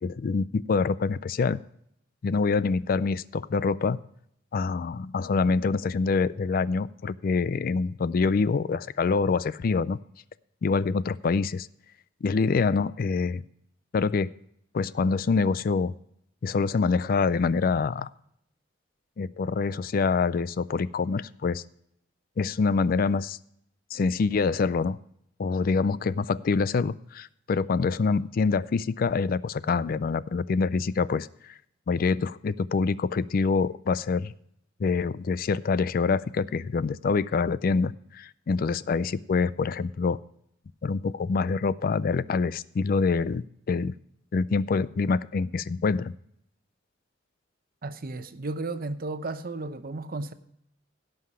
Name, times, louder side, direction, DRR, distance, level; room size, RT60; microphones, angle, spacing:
voice 1, 0.0-1.6 2.2-4.0 4.5-10.0 10.6-11.7 12.2-13.4 13.9-14.3 14.7-15.9 16.4-18.1 19.2-21.6 22.4-23.4 23.9-25.0 25.4-31.5 31.9-34.3 34.8-40.2 40.8-43.9 44.3-46.1, left 4 dB, 50° left, 0.4 m, -26 dB
voice 2, 47.8-50.3, right 3 dB, 50° right, 0.8 m, -34 dB
16.5 x 5.8 x 4.7 m
head